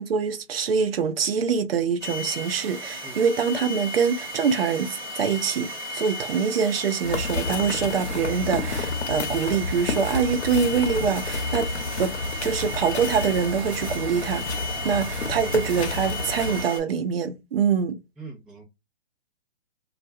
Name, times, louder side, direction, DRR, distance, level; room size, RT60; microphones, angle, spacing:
voice 1, 0.0-11.7 12.0-12.1 12.4-18.0, right 6 dB, 60° right, 0.6 m, -25 dB
sound 1, 2.0-16.8, equal, 20° right, 0.9 m, -35 dB
sound 2, 7.0-16.6, left 3 dB, 75° left, 0.9 m, -30 dB
voice 2, 18.2-18.6, right 3 dB, ahead, 0.3 m, -42 dB
2.3 x 2.2 x 2.6 m
figure-of-eight pair, 130°, 33 cm